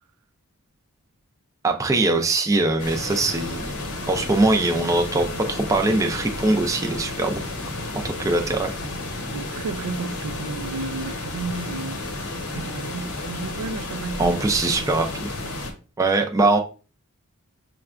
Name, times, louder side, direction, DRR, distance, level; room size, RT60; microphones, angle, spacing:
voice 1, 1.6-3.7 4.1-7.4 8.0-8.7 14.2-15.4 16.0-16.6, right 2 dB, 15° right, 0.4 m, -22 dB
sound 1, 2.8-15.7, left 2 dB, 75° left, 0.7 m, -32 dB
voice 2, 9.3-12.0 12.5-14.4, right 4 dB, 85° right, 0.3 m, -32 dB
5.8 x 2.2 x 2.4 m
head